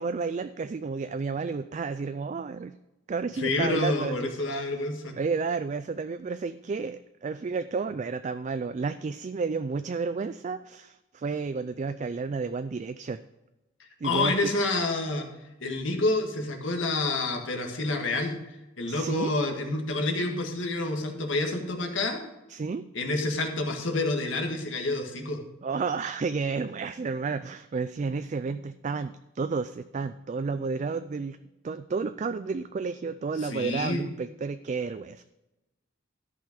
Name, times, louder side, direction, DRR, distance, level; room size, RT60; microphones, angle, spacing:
voice 1, 0.0-2.7 3.1-4.7 5.2-13.2 14.0-14.5 18.9-19.3 22.5-22.9 25.6-31.4 31.6-35.2, right 4 dB, 35° right, 11 dB, 0.3 m, -31 dB
voice 2, 3.4-5.1 14.0-15.3 15.6-18.4 18.8-22.2 22.9-25.4 33.4-34.0, left 2 dB, 70° left, 3 dB, 1.8 m, -28 dB
13.0 x 5.7 x 5.1 m, 0.99 s
head